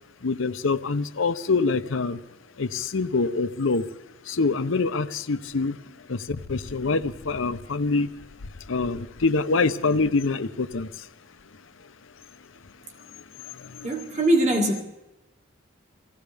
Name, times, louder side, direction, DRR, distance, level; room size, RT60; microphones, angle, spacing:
voice 1, 0.2-2.2 2.6-3.8 4.3-5.8 6.1-8.1 8.7-10.9 13.8-13.9, left 3 dB, 80° left, 11 dB, 0.8 m, -25 dB
voice 2, 13.8-14.8, right 1 dB, 35° right, 2 dB, 1.9 m, -22 dB
25.5 x 16.0 x 3.5 m, 1.0 s
head